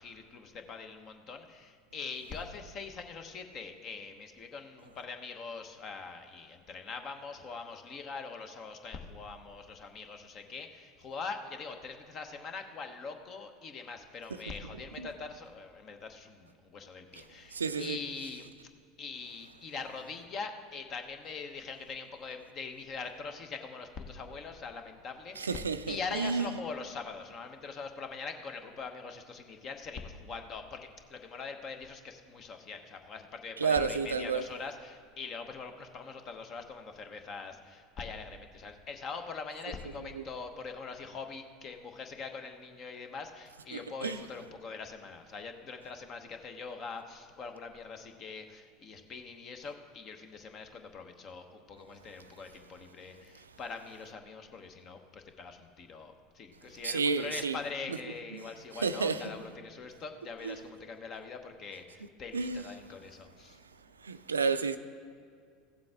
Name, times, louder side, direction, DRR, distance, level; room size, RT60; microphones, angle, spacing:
voice 1, 0.0-18.5 19.0-63.6, left 4 dB, 40° left, 1.0 m, -43 dB
voice 2, 17.5-18.0 25.4-26.5 33.6-34.4 40.1-40.2 43.7-44.2 56.8-57.6 58.8-59.3 60.4-60.5 62.3-62.6 64.0-64.8, right 5 dB, 90° right, 0.4 m, -31 dB
15.5 x 7.4 x 3.6 m
hypercardioid pair, 80°, 0 cm